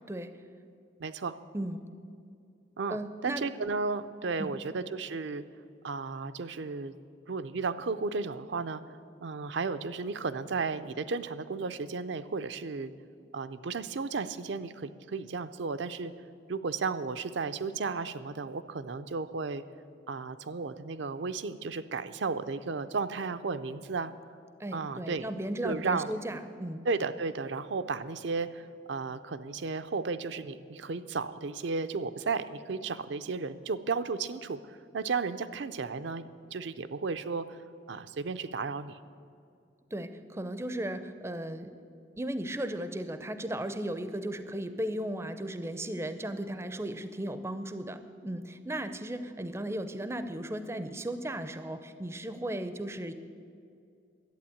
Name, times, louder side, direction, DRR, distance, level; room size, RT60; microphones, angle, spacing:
voice 1, 1.0-1.4 2.8-3.0 3.2-5.4 5.8-6.9 7.3-8.8 9.2-12.9 13.3-16.1 16.5-19.6 20.1-24.1 24.7-25.2 25.6-26.1 26.8-36.3 36.5-37.6 37.9-39.0, right 4 dB, 65° right, 11 dB, 0.5 m, -34 dB
voice 2, 1.5-1.9 2.9-3.4 4.4-4.5 24.6-26.8 39.9-41.7 42.2-53.1, right 1 dB, 15° right, 10 dB, 0.5 m, -36 dB
11.5 x 8.8 x 8.5 m, 2.4 s
head